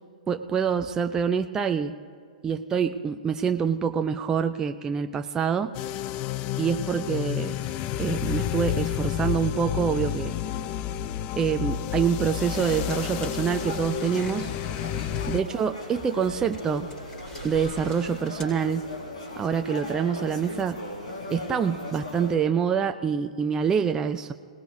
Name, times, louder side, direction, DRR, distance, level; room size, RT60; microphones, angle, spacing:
voice 1, 0.3-1.9 2.4-5.7 6.6-7.6 8.0-10.3 11.4-14.5 15.3-16.9 17.4-18.9 19.4-20.8 21.3-24.3, right 7 dB, 15° right, 7 dB, 0.5 m, -26 dB
sound 1, 5.7-15.4, left 11 dB, 35° left, 0.5 m, -30 dB
sound 2, 12.5-22.4, left 1 dB, 75° left, 3.7 m, -38 dB
sound 3, 12.5-19.2, right 1 dB, 20° left, 4.5 m, -43 dB
27.0 x 19.0 x 2.7 m, 2.1 s
figure-of-eight pair, 115°, 4 cm